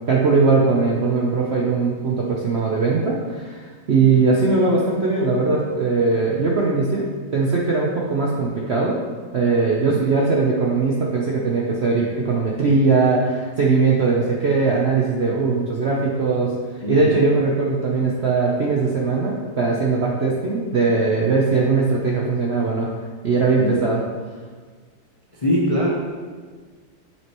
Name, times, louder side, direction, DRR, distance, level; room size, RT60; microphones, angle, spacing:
voice 1, 0.1-9.0 9.3-22.9 23.2-24.0, right 4 dB, 65° right, -3 dB, 0.6 m, -20 dB
voice 2, 3.9-4.3 16.8-17.2 23.6-23.7 25.4-25.9, left 1 dB, 45° left, -4 dB, 0.4 m, -23 dB
7.4 x 6.2 x 3.0 m, 1.5 s
omnidirectional pair, 2.0 m